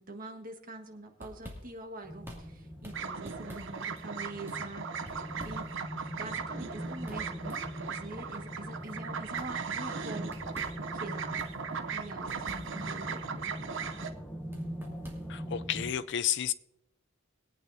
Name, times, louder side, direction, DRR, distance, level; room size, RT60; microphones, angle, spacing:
voice 1, 0.0-5.7 6.0-10.4 10.9-11.4 11.9-13.7 14.1-14.2, right 2 dB, 45° right, 1.5 m, -44 dB
sound 1, 0.8-15.8, equal, 10° right, 2.5 m, -52 dB
sound 2, 2.0-15.9, equal, 5° left, 1.0 m, -42 dB
sound 3, 2.9-14.1, right 6 dB, 65° right, 0.7 m, -38 dB
voice 2, 15.3-16.5, left 10 dB, 60° left, 0.5 m, -31 dB
23.0 x 8.7 x 2.7 m
head